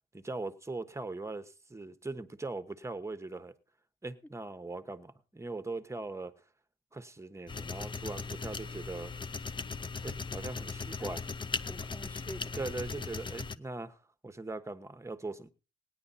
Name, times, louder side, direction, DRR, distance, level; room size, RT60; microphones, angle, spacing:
voice 1, 0.1-3.5 4.0-6.3 6.9-9.1 10.0-11.2 12.6-14.0 14.2-15.5, right 3 dB, 15° right, 1.2 m, -40 dB
sound 1, 7.5-13.6, left 4 dB, 25° left, 0.6 m, -38 dB
voice 2, 11.6-13.0, equal, 10° left, 1.4 m, -48 dB
17.0 x 10.0 x 4.2 m
cardioid pair, 90°, 20 cm